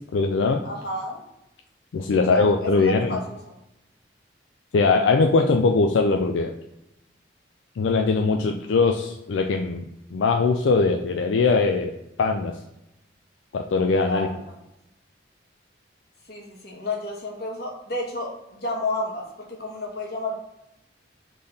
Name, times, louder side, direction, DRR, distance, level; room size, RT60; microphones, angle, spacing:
voice 1, 0.1-0.6 1.9-3.1 4.7-6.5 7.8-9.9 10.1-11.9 12.2-12.6 13.5-14.3, left 4 dB, 85° left, 4 dB, 0.4 m, -21 dB
voice 2, 0.6-1.2 2.1-3.5 14.0-14.6 16.3-20.4, left 2 dB, 55° left, -1 dB, 1.3 m, -31 dB
3.7 x 3.4 x 3.9 m, 0.87 s
head